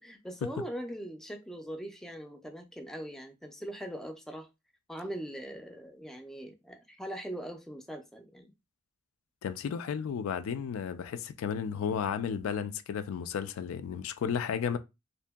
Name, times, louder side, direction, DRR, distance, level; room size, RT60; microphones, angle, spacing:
voice 1, 0.0-4.5 4.9-8.5, right 1 dB, ahead, 0.3 m, -41 dB
voice 2, 9.4-14.8, left 7 dB, 90° left, 0.3 m, -33 dB
2.7 x 2.5 x 2.2 m
head